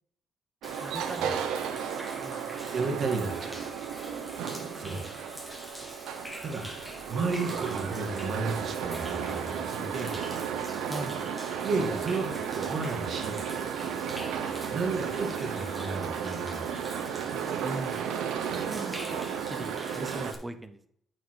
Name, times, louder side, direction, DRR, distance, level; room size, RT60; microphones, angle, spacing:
Human voice / Rain / Stream, 0.6-20.3, equal, 5° left, 1.7 m, -44 dB
sound 1, 0.6-20.3, right 8 dB, 90° right, 0.7 m, -34 dB
voice 1, 0.8-2.7 4.5-5.3 10.9-11.2 17.6-18.1 18.5-19.2 19.5-20.9, right 1 dB, 15° right, 9 dB, 0.8 m, -41 dB
voice 2, 2.7-3.6 4.7-5.0 6.4-6.7 7.1-10.1 11.6-13.4 14.7-16.8, right 3 dB, 55° right, 2 dB, 1.8 m, -33 dB
8.8 x 4.7 x 4.6 m, 0.68 s
cardioid pair, 90°, 0 cm